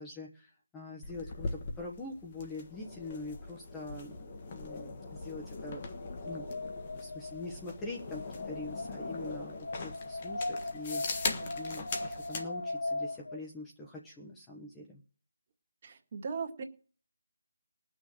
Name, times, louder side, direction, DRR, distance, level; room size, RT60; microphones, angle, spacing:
voice 1, 0.0-5.9 6.2-6.5 7.0-11.1 11.5-15.0, left 2 dB, 10° left, -2 dB, 1.2 m, -44 dB
sound 1, 1.0-12.5, left 3 dB, 35° left, 1.5 m, -41 dB
Wind, 5.5-13.4, left 2 dB, 75° left, 1.2 m, -39 dB
voice 2, 11.2-11.7 15.8-16.6, right 5 dB, 35° right, 3 dB, 2.0 m, -39 dB
19.0 x 6.4 x 7.5 m, 0.42 s
figure-of-eight pair, 165°, 0 cm